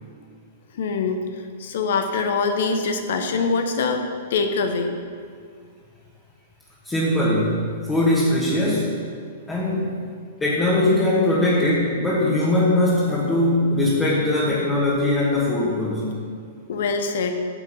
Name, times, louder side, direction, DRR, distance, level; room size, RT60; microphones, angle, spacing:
voice 1, 0.7-1.2 1.6-4.0 4.3-4.9 16.7-17.3, left 4 dB, 70° left, 6 dB, 1.2 m, -23 dB
voice 2, 6.8-8.9 9.5-9.9 10.4-16.2, left 1 dB, 15° left, -7 dB, 2.1 m, -21 dB
9.9 x 6.8 x 5.6 m, 2.2 s
hypercardioid pair, 120°, 0 cm